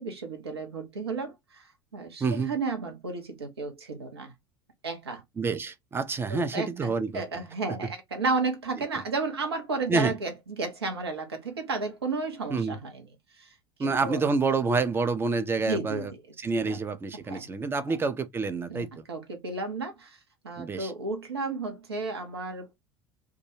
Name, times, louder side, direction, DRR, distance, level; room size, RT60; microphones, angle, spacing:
voice 1, 0.0-1.6 1.9-4.3 4.8-5.2 6.3-10.3 10.6-13.0 13.4-13.5 13.8-14.3 15.6-16.1 16.6-16.8 17.3-17.5 17.9-18.0 18.7-20.2 20.4-22.7, right 3 dB, 75° right, 0.8 m, -33 dB
voice 2, 2.2-2.5 5.4-7.4 9.9-10.2 12.5-12.8 13.8-16.1 16.4-19.0 20.6-20.9, right 4 dB, 15° right, 0.4 m, -28 dB
2.3 x 2.2 x 3.0 m
figure-of-eight pair, 70°, 13 cm